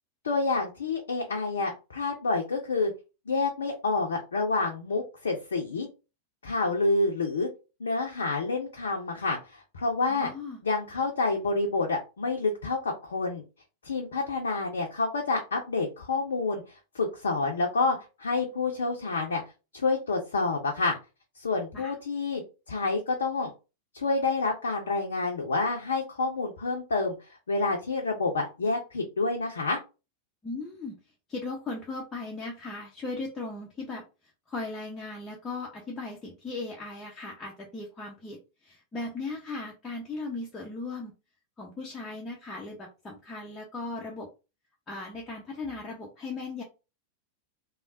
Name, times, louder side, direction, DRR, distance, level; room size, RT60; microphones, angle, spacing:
voice 1, 0.2-2.9 3.3-5.9 6.4-7.5 7.8-10.3 10.6-13.4 13.8-16.6 16.9-19.4 19.7-21.0 21.4-22.4 22.7-23.5 23.9-27.1 27.5-29.8, left 3 dB, 70° left, 1 dB, 0.5 m, -28 dB
voice 2, 10.1-10.6 21.7-21.9 30.4-31.0 31.3-34.0 34.5-41.1 41.6-44.3 44.9-46.6, left 3 dB, 15° left, -2 dB, 0.7 m, -37 dB
3.2 x 2.1 x 2.5 m, 0.29 s
figure-of-eight pair, 90°, 0 cm